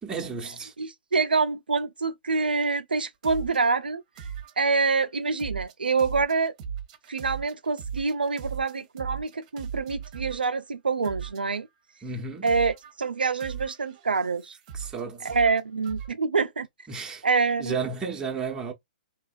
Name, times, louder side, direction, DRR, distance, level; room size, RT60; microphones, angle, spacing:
voice 1, 0.0-0.7 12.0-12.5 14.7-15.3 16.9-17.2 17.6-18.7, right 5 dB, 15° right, 1.1 m, -33 dB
voice 2, 0.8-4.0 4.6-6.5 7.1-11.7 12.4-14.6 15.2-16.7 17.2-17.8, right 4 dB, 85° right, 0.4 m, -26 dB
sound 1, 3.2-3.7 4.2-4.9 5.4-10.4 11.0-11.6 12.5-12.9 13.4-15.0 15.2-16.1, right 7 dB, 45° right, 1.0 m, -38 dB
3.4 x 3.0 x 2.5 m
figure-of-eight pair, 120°, 5 cm